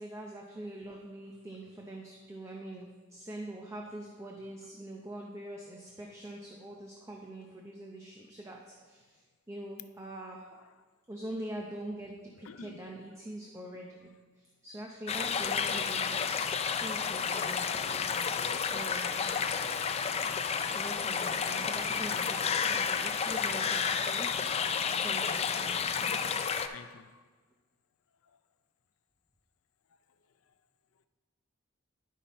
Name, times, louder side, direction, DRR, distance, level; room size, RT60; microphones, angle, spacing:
voice 1, 0.0-9.2 9.5-10.4 11.1-14.1 14.4-16.4 16.8-18.2 18.7-19.3 20.7-24.3 25.0-26.4, right 1 dB, 15° right, -1 dB, 0.6 m, -44 dB
voice 2, 12.4-12.9 18.3-18.8 19.3-19.6 24.8-25.0 26.6-27.2, left 5 dB, 90° left, 11 dB, 0.5 m, -50 dB
sound 1, 15.1-26.7, left 6 dB, 30° left, 0.4 m, -31 dB
10.5 x 5.6 x 4.1 m, 1.4 s
head